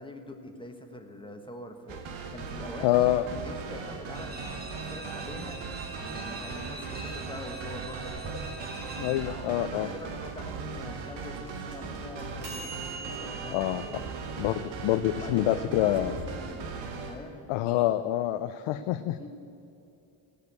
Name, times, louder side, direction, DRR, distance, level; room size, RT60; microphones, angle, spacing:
voice 1, 0.0-3.2 3.4-5.6 6.0-8.2 9.0-14.2 15.2-16.0 16.2-16.8 17.0-17.5 18.6-19.3, left 1 dB, 10° left, 4 dB, 1.2 m, -44 dB
sound 1, 1.9-17.2, right 5 dB, 70° right, 1.5 m, -39 dB
voice 2, 2.8-3.2 9.0-9.9 13.5-13.8 14.4-16.1 17.5-19.2, left 14 dB, 85° left, 10 dB, 0.6 m, -26 dB
sound 2, 4.1-9.2, right 3 dB, 20° right, 1.5 m, -43 dB
sound 3, 8.1-16.2, right 3 dB, 50° right, 4.0 m, -45 dB
16.5 x 6.7 x 8.2 m, 2.7 s
cardioid pair, 130°, 49 cm